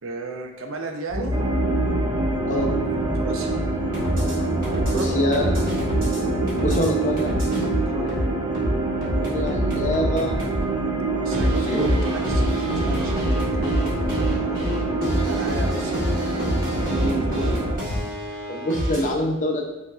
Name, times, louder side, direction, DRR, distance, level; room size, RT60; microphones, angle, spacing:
voice 1, 0.0-1.3 3.1-3.6 4.9-5.2 7.9-8.2 11.1-14.6 15.3-16.3 16.9-17.6, right 2 dB, 65° right, 3 dB, 0.5 m, -33 dB
sound 1, 1.1-6.9 7.2-10.6 11.3-19.1, equal, 40° right, 1.2 m, -26 dB
sound 2, 1.3-17.8, right 3 dB, 20° right, 0.5 m, -26 dB
voice 2, 4.9-5.5 6.6-7.3 9.2-10.4 11.7-11.9 15.1-15.3 17.1-17.3 18.5-19.7, left 1 dB, 35° left, 1 dB, 0.5 m, -25 dB
sound 3, 6.0-6.9 7.2-8.0 8.4-8.5 8.9-9.0 9.5-10.9 11.3-11.9, right 2 dB, ahead, 1.2 m, -35 dB
5.4 x 2.5 x 2.4 m, 1.1 s
head